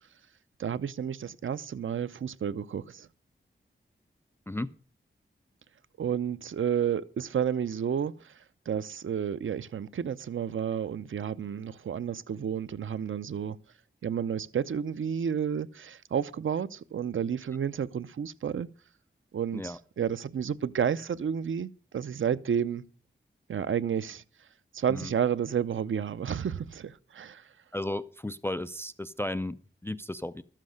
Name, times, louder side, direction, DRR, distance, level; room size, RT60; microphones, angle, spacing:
voice 1, 0.6-3.1 6.0-8.3 8.7-13.6 14.0-18.7 19.3-22.8 23.5-24.2 24.7-27.4, right 8 dB, 80° right, 0.6 m, -31 dB
voice 2, 4.5-4.8 19.5-19.8 24.9-25.1 27.7-30.4, left 1 dB, 10° left, 0.5 m, -34 dB
13.0 x 7.5 x 6.4 m
wide cardioid pair, 80°, 20 cm